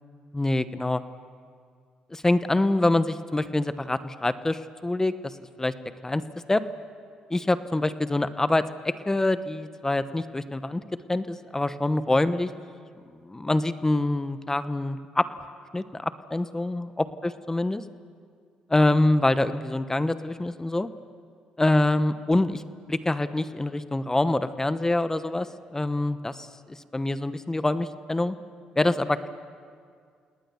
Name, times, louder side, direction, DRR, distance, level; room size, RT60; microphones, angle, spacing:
voice 1, 0.3-1.0 2.1-5.3 5.6-5.7 6.0-6.2 6.5-6.6 7.3-10.8 11.1-12.5 13.2-15.3 15.7-17.8 18.7-20.9 21.6-22.6 22.9-25.5 25.7-28.3 28.8-29.3, left 2 dB, 15° left, 13 dB, 1.0 m, -25 dB
28.5 x 19.0 x 7.1 m, 2.1 s
supercardioid pair, 65°, 3 cm